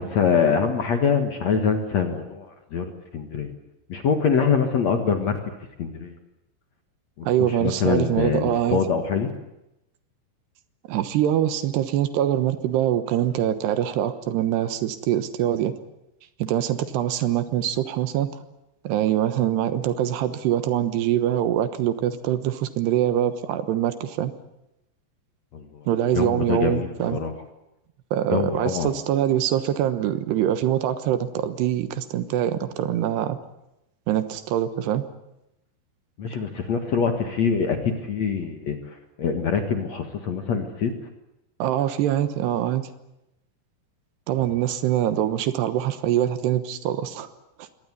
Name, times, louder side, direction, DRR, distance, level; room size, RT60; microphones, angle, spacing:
voice 1, 0.0-2.5 2.7-3.5 3.9-5.4 5.8-6.2 7.2-9.3 25.5-25.9 26.1-27.3 28.3-28.9 36.2-40.9, left 6 dB, 55° left, 6 dB, 2.2 m, -24 dB
voice 2, 7.2-8.8 10.9-15.7 16.4-18.3 18.8-24.3 25.9-27.2 28.1-33.4 34.1-35.0 41.6-42.9 44.3-47.3 47.6-47.7, right 11 dB, 75° right, 11 dB, 3.2 m, -24 dB
24.0 x 19.0 x 9.7 m, 0.88 s
omnidirectional pair, 5.1 m